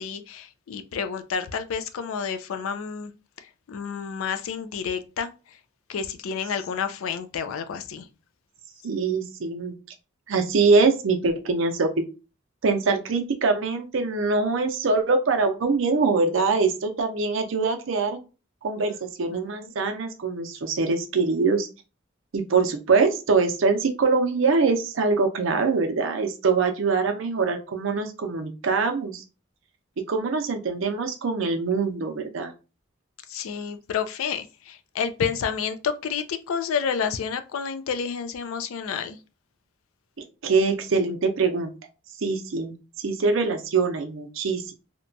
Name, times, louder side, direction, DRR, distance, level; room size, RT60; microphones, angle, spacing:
voice 1, 0.0-3.1 3.4-5.6 5.9-8.1 19.3-19.8 33.3-39.2, left 6 dB, 80° left, 9 dB, 0.4 m, -30 dB
voice 2, 8.8-9.7 10.3-11.9 12.6-18.2 18.6-21.7 22.3-29.2 30.1-32.5 40.4-41.7 42.2-44.7, right 4 dB, 70° right, 6 dB, 0.5 m, -23 dB
2.8 x 2.2 x 2.6 m, 0.32 s
head